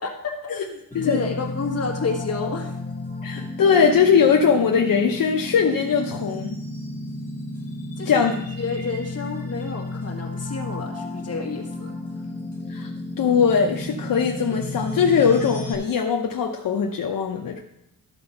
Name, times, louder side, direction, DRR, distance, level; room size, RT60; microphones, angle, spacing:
voice 1, 0.0-2.7 8.0-8.2 8.6-11.9, left 4 dB, 45° left, 0 dB, 1.7 m, -30 dB
sound 1, 0.9-15.7, left 2 dB, 5° left, 2.2 m, -33 dB
voice 2, 3.2-6.6 8.1-8.4 12.7-12.9 13.2-17.6, left 6 dB, 75° left, 1 dB, 0.8 m, -20 dB
12.5 x 4.3 x 5.7 m, 0.81 s
wide cardioid pair, 160°, 34 cm